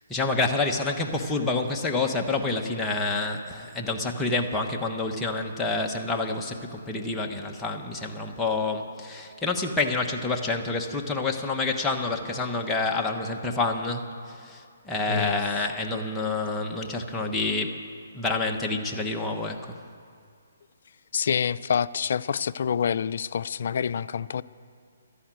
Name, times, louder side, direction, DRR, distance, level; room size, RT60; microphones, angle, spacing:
voice 1, 0.1-17.8 18.1-19.7, left 3 dB, 10° left, 1 dB, 1.2 m, -28 dB
voice 2, 15.1-15.4 21.1-24.4, left 7 dB, 60° left, 15 dB, 0.4 m, -27 dB
13.0 x 11.0 x 9.1 m, 2.3 s
hypercardioid pair, 150°, 0 cm